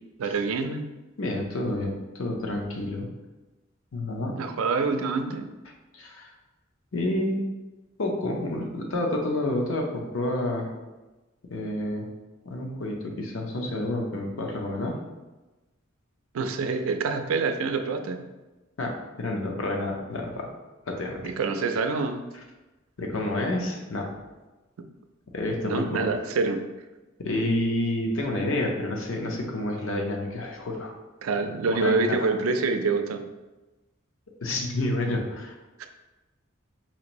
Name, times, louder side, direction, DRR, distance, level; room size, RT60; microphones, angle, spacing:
voice 1, 0.2-0.9 4.4-5.5 16.3-18.3 21.2-22.2 25.6-26.6 31.2-33.2 35.8-35.9, right 4 dB, 85° right, 7 dB, 0.4 m, -26 dB
voice 2, 1.2-3.1 3.9-4.4 5.9-6.3 6.9-7.5 8.0-10.7 11.5-12.1 12.4-14.9 18.8-20.5 20.9-21.3 23.0-24.1 25.3-26.1 27.2-30.9 31.7-32.3 34.4-35.5, left 1 dB, 70° left, 1 dB, 0.7 m, -29 dB
4.3 x 2.5 x 3.0 m, 1.1 s
head